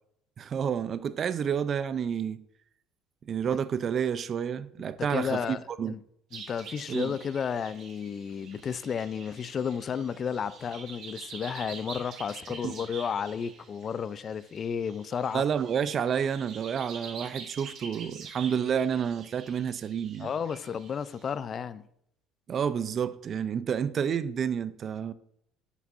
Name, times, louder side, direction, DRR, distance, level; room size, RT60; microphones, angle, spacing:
voice 1, 0.4-2.4 3.2-5.9 6.9-7.2 12.6-12.7 15.3-20.3 22.5-25.1, right 7 dB, 40° right, 0.4 m, -30 dB
voice 2, 5.1-5.6 5.9-6.0 6.3-15.4 20.2-21.9, left 7 dB, 40° left, 0.4 m, -32 dB
sound 1, 6.3-21.3, right 5 dB, 60° right, 1.3 m, -47 dB
10.5 x 6.1 x 2.5 m
cardioid pair, 115°, 0 cm